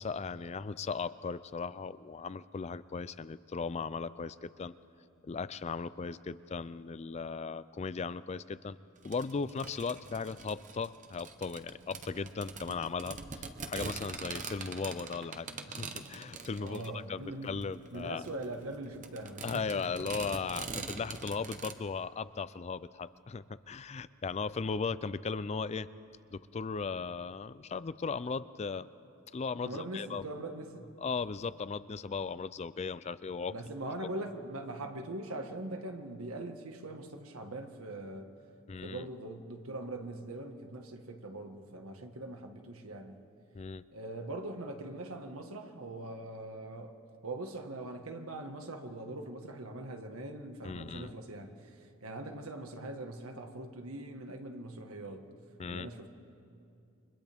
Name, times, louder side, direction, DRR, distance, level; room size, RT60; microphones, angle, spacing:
voice 1, 0.0-4.7 5.2-8.8 9.0-18.2 19.4-25.9 26.3-28.9 29.3-30.2 31.0-33.5 38.7-39.1 43.5-43.8 50.6-51.1 55.6-55.9, left 5 dB, 30° left, 15 dB, 0.4 m, -37 dB
sound 1, 9.0-21.7, right 4 dB, 35° right, 1.0 m, -44 dB
voice 2, 16.6-17.6 17.9-20.0 29.6-30.9 33.5-38.3 38.8-43.2 43.9-47.0 47.2-55.2 55.7-56.1, right 2 dB, 90° right, 5 dB, 1.6 m, -42 dB
29.5 x 25.0 x 3.5 m, 2.6 s
head